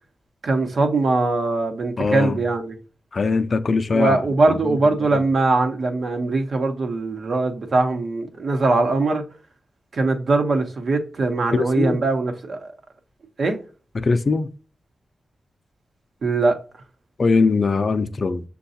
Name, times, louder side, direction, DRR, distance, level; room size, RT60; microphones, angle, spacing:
voice 1, 0.4-2.8 3.9-9.2 9.9-12.7 13.4-13.6 16.2-16.6, right 3 dB, 70° right, 0.9 m, -21 dB
voice 2, 2.0-2.4 3.1-4.8 5.1-5.2 11.5-12.0 13.9-14.5 17.2-18.4, left 4 dB, 50° left, 0.4 m, -21 dB
6.6 x 2.3 x 2.7 m
wide cardioid pair, 85°, 0 cm